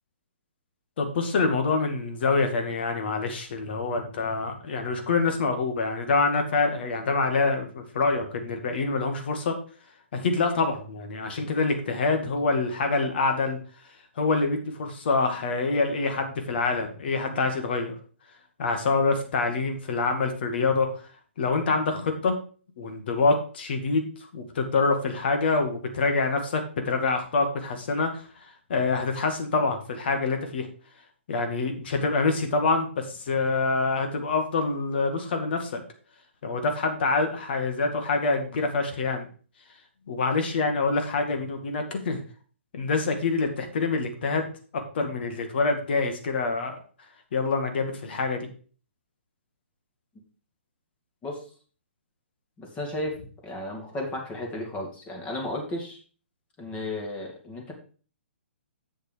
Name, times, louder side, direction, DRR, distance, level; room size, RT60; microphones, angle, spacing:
voice 1, 1.0-9.5 10.1-13.6 14.2-18.0 18.6-20.9 21.4-22.4 22.8-28.2 28.7-30.7 31.3-35.8 36.4-39.3 40.1-42.2 42.7-44.5 44.7-46.8 47.3-48.5, left 3 dB, 55° left, 5 dB, 2.2 m, -26 dB
voice 2, 52.6-56.0 56.6-57.7, left 1 dB, 20° left, 1 dB, 2.5 m, -34 dB
7.8 x 6.6 x 5.0 m, 0.40 s
figure-of-eight pair, 130°, 7 cm